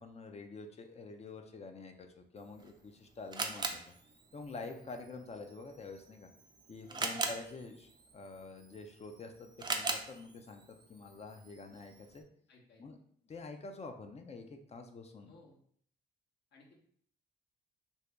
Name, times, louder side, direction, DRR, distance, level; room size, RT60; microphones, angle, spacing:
voice 1, 0.0-3.9 4.3-6.3 6.7-12.2 12.8-13.0 13.2-15.3, left 3 dB, 35° left, 5 dB, 0.5 m, -47 dB
Camera, 2.4-12.2, right 3 dB, 20° right, 0.4 m, -42 dB
voice 2, 6.9-7.2 12.5-12.8 15.3-15.6 16.5-16.8, left 2 dB, 60° left, -1 dB, 1.0 m, -60 dB
2.8 x 2.7 x 3.4 m, 0.62 s
cardioid pair, 90°, 20 cm